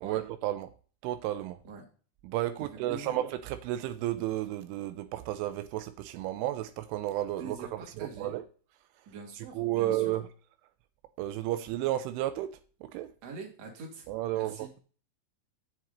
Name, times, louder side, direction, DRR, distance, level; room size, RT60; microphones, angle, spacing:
voice 1, 0.0-0.7 1.0-1.6 2.2-8.4 9.5-10.2 11.2-13.1 14.1-14.7, right 14 dB, 85° right, 3.1 m, -32 dB
voice 2, 2.6-3.2 7.4-8.3 9.1-10.1 13.2-14.1 14.3-14.7, right 4 dB, 45° right, 2.6 m, -44 dB
7.9 x 7.8 x 4.0 m
omnidirectional pair, 5.6 m